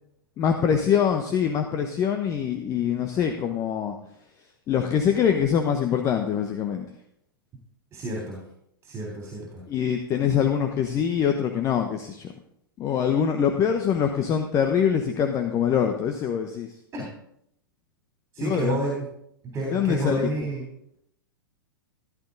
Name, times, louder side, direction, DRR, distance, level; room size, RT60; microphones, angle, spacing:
voice 1, 0.4-3.9 4.7-6.8 9.7-12.3 12.8-16.7 18.4-18.8 19.7-20.2, left 8 dB, 25° left, 5 dB, 1.1 m, -24 dB
voice 2, 7.9-8.4 8.8-9.6 16.9-17.1 18.3-19.1 19.4-20.7, right 2 dB, 20° right, -1 dB, 3.4 m, -30 dB
14.5 x 12.0 x 4.0 m, 0.75 s
figure-of-eight pair, 105°, 12 cm